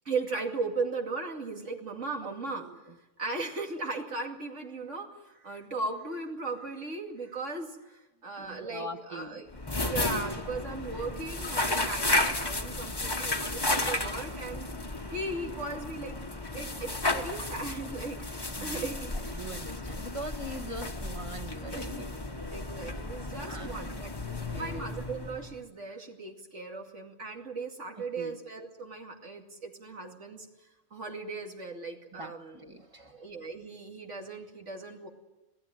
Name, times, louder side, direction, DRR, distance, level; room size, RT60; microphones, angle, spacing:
voice 1, 0.0-2.7 3.2-14.7 15.1-16.2 16.5-19.5 21.7-22.0 22.5-24.1 24.6-30.5 30.9-32.6 33.1-35.1, right 3 dB, 85° right, 2 dB, 2.9 m, -37 dB
voice 2, 2.6-2.9 8.4-9.4 10.9-11.0 18.6-22.1 23.5-23.9 24.4-24.9 28.0-28.4 32.1-33.3, right 1 dB, 25° right, 6 dB, 1.6 m, -42 dB
sound 1, 9.5-25.6, left 2 dB, 20° left, 1.3 m, -33 dB
26.5 x 17.0 x 9.0 m, 1.1 s
omnidirectional pair, 1.2 m